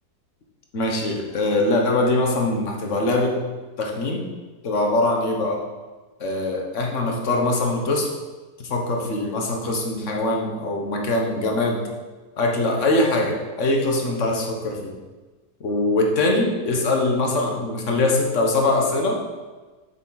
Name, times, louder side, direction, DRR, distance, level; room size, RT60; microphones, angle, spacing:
voice 1, 0.7-3.4 3.8-4.3 4.6-5.6 6.2-8.1 8.6-11.8 12.4-14.9 15.6-19.2, left 2 dB, 50° left, 1 dB, 1.5 m, -22 dB
8.4 x 7.1 x 4.0 m, 1.3 s
omnidirectional pair, 1.7 m